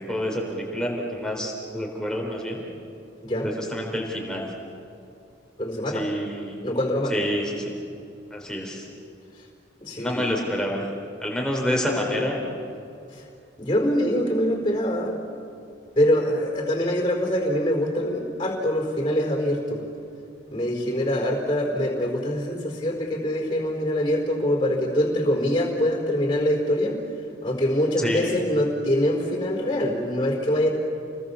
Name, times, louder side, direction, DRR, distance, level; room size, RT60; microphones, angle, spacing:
voice 1, 0.0-2.6 3.4-4.5 5.9-6.5 7.1-7.7 8.3-8.9 10.0-10.9 11.2-12.5 28.0-28.4, equal, 5° left, -1 dB, 3.7 m, -28 dB
voice 2, 5.6-6.1 6.6-7.2 9.8-10.4 13.1-13.2 13.6-15.2 16.0-19.8 20.5-27.0 27.4-30.7, equal, 25° left, 2 dB, 4.3 m, -24 dB
29.5 x 20.5 x 7.0 m, 2.6 s
head